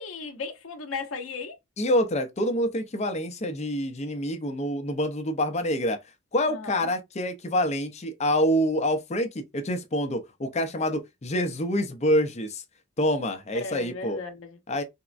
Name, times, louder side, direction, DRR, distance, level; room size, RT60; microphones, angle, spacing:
voice 1, 0.0-1.6 6.5-6.9 13.5-14.6, left 4 dB, 70° left, 0.7 m, -36 dB
voice 2, 1.8-6.0 6.3-12.6 13.0-14.2 14.7-14.8, equal, 30° left, 0.5 m, -26 dB
3.5 x 2.1 x 2.4 m
head